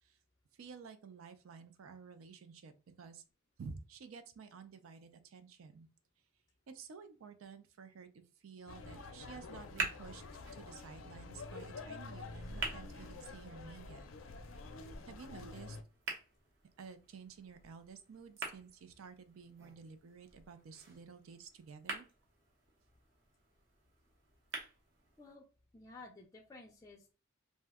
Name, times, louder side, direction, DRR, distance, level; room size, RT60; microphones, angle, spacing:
voice 1, 0.6-3.2 3.6-5.9 6.7-10.2 10.5-14.0 15.1-15.8 16.8-22.1, right 5 dB, 85° right, 10 dB, 0.4 m, -52 dB
sound 1, 8.7-15.8, left 3 dB, 75° left, 0.5 m, -48 dB
sound 2, 9.3-25.3, right 3 dB, 60° right, 0.8 m, -48 dB
sound 3, 12.1-15.0, equal, 15° right, 0.8 m, -54 dB
voice 2, 25.7-27.1, left 3 dB, 15° left, 2 dB, 0.3 m, -54 dB
2.6 x 2.1 x 3.4 m, 0.34 s
head